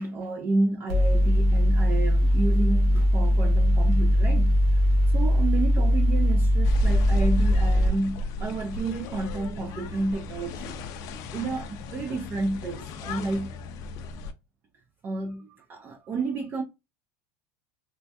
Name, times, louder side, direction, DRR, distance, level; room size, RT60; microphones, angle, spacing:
voice 1, 0.0-4.6 5.1-11.0 11.3-13.5 15.0-16.6, right 3 dB, 25° right, 0.3 m, -31 dB
Mechanical fan, 0.9-7.9, equal, 55° right, 1.0 m, -20 dB
sound 1, 6.6-14.3, left 2 dB, 45° left, 0.4 m, -34 dB
3.2 x 2.2 x 2.6 m
supercardioid pair, 155°, 8 cm